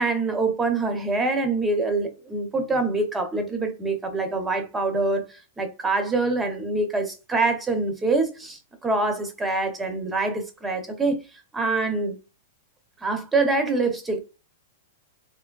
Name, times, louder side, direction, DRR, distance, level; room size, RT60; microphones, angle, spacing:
voice 1, 0.0-5.2 5.6-12.2 13.0-14.2, right 3 dB, 10° right, 0.6 m, -25 dB
3.4 x 2.9 x 2.2 m
supercardioid pair, 165°, 0 cm